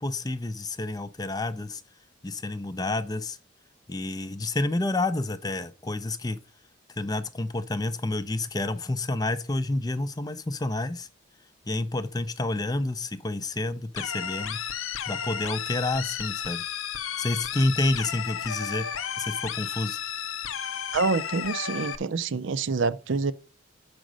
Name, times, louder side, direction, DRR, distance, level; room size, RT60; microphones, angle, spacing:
voice 1, 0.0-1.8 2.2-3.4 3.9-6.4 7.0-11.1 11.7-14.6 15.0-16.6 17.2-18.8 19.2-20.0, left 2 dB, 20° left, 0.5 m, -29 dB
sound 1, 14.0-22.0, left 8 dB, 85° left, 0.7 m, -33 dB
voice 2, 20.9-23.3, right 4 dB, 65° right, 0.5 m, -27 dB
6.3 x 5.2 x 6.2 m
head